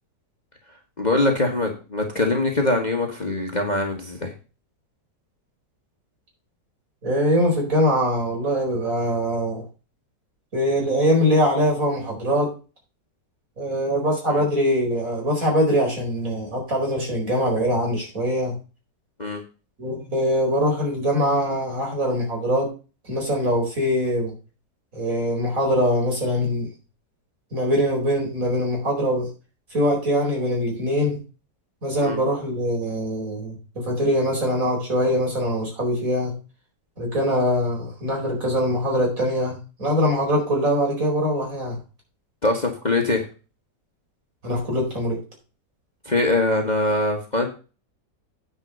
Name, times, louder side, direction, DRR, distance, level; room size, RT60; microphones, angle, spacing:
voice 1, 1.0-4.3 14.3-14.4 19.2-19.4 32.0-32.2 42.4-43.3 46.0-47.5, left 2 dB, 25° left, 2 dB, 1.6 m, -23 dB
voice 2, 7.0-9.6 10.5-12.5 13.6-18.5 19.8-22.7 23.0-24.3 24.9-26.7 27.5-29.3 29.7-31.2 31.8-36.3 37.0-41.8 44.4-45.2, equal, 50° right, -1 dB, 5.0 m, -23 dB
9.6 x 5.3 x 6.6 m, 0.33 s
omnidirectional pair, 1.9 m